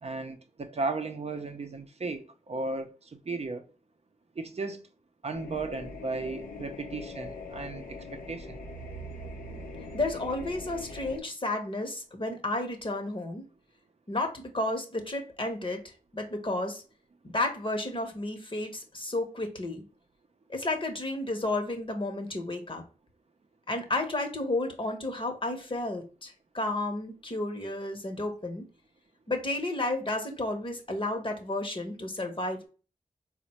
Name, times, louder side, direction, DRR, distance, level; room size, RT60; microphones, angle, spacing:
voice 1, 0.0-3.6 4.4-4.8 5.2-8.6, right 3 dB, 50° right, 0.5 m, -35 dB
sound 1, 5.3-11.2, left 2 dB, 85° left, 0.6 m, -42 dB
voice 2, 9.9-13.4 14.1-16.8 17.2-19.8 20.5-22.8 23.7-28.7 29.3-32.7, left 2 dB, 35° left, 0.8 m, -32 dB
4.0 x 2.1 x 2.8 m
cardioid pair, 40°, 14 cm